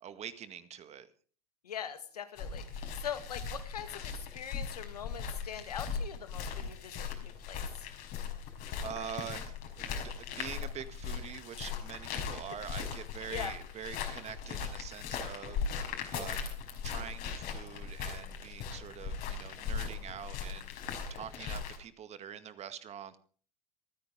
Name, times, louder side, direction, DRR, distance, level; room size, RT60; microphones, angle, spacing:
voice 1, 0.0-1.1 8.8-16.4 16.8-20.7 21.1-23.2, right 9 dB, 35° right, 12 dB, 2.0 m, -45 dB
voice 2, 1.6-7.9 13.3-13.5, left 8 dB, 80° left, 9 dB, 2.2 m, -42 dB
sound 1, 2.4-21.8, left 6 dB, 50° left, 5.4 m, -39 dB
26.5 x 9.8 x 3.8 m, 0.42 s
hypercardioid pair, 85°, 19 cm